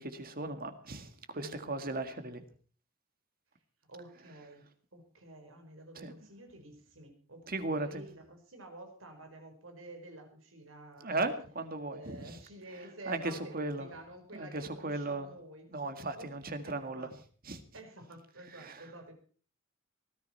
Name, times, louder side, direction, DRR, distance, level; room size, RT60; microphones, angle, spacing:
voice 1, 0.0-2.4 6.0-6.2 7.5-8.0 11.0-12.4 12.7-13.9 14.3-15.3 15.7-17.1 17.4-17.6 18.5-18.9, right 2 dB, 45° right, 9 dB, 2.0 m, -37 dB
voice 2, 1.4-1.7 3.9-4.7 4.9-11.3 11.9-16.3 16.6-17.1 17.7-19.1, right 2 dB, 90° right, 5 dB, 4.7 m, -50 dB
19.5 x 14.0 x 4.4 m, 0.43 s
head